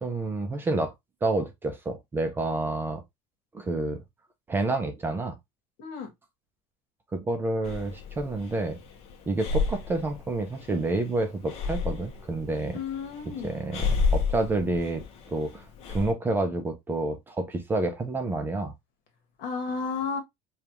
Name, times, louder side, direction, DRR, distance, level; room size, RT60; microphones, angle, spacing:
voice 1, 0.0-0.9 1.2-3.0 3.5-4.0 4.5-5.4 7.1-8.8 9.3-12.8 13.4-18.7, right 2 dB, 15° right, 0.5 m, -29 dB
voice 2, 5.8-6.1 12.7-13.5 19.4-20.2, left 5 dB, 65° left, 1.4 m, -32 dB
Breathing, 7.6-16.1, left 4 dB, 50° left, 0.9 m, -32 dB
5.0 x 2.4 x 2.9 m
cardioid pair, 165°, 14 cm